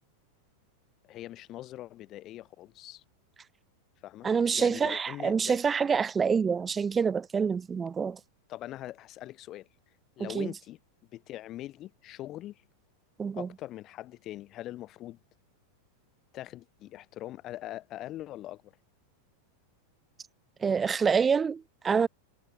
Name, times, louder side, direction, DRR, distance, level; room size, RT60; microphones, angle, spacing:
voice 1, 1.0-3.0 4.0-5.6 8.5-9.7 10.2-10.8 11.1-12.6 13.3-15.2 16.3-18.7, left 14 dB, 35° left, 1.1 m, -42 dB
voice 2, 4.2-8.2 10.2-10.5 13.2-13.5 20.6-22.1, right 6 dB, 20° right, 0.3 m, -27 dB
figure-of-eight pair, 90°, 0 cm